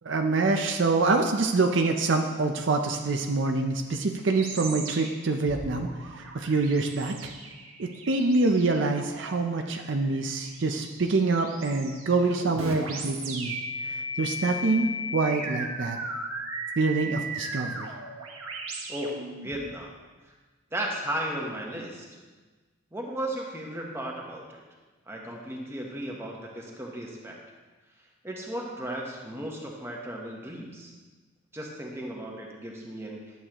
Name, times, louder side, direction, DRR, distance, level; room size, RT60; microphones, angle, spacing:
voice 1, 0.0-5.9 6.2-7.3 7.8-13.5 13.9-16.0 16.8-17.9, right 3 dB, 55° right, 4 dB, 0.5 m, -26 dB
sound 1, 4.4-19.6, right 1 dB, 80° right, 1.3 m, -37 dB
voice 2, 18.9-19.9 20.7-22.1 22.9-24.6 25.1-27.4 28.2-30.9 31.5-33.2, right 1 dB, 10° right, -1 dB, 1.1 m, -35 dB
11.0 x 8.1 x 3.0 m, 1.3 s
head